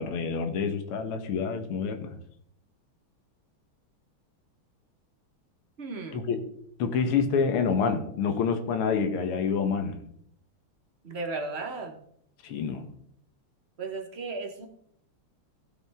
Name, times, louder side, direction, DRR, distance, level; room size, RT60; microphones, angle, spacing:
voice 1, 0.0-2.2 6.1-6.4 6.8-10.0 12.4-12.8, left 5 dB, 80° left, 8 dB, 2.0 m, -27 dB
voice 2, 5.8-6.2 11.0-12.0 13.8-14.7, right 3 dB, 40° right, 3 dB, 1.1 m, -35 dB
16.0 x 5.9 x 3.5 m, 0.69 s
omnidirectional pair, 2.4 m